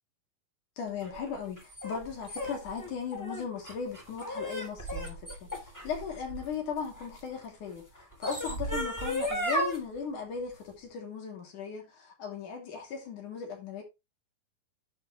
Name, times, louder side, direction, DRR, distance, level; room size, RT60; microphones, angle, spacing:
voice 1, 0.8-13.8, left 6 dB, 55° left, 4.2 m, -37 dB
sound 1, 1.0-7.2 8.0-9.8, equal, 5° left, 2.4 m, -35 dB
10.5 x 6.9 x 3.2 m
omnidirectional pair, 4.4 m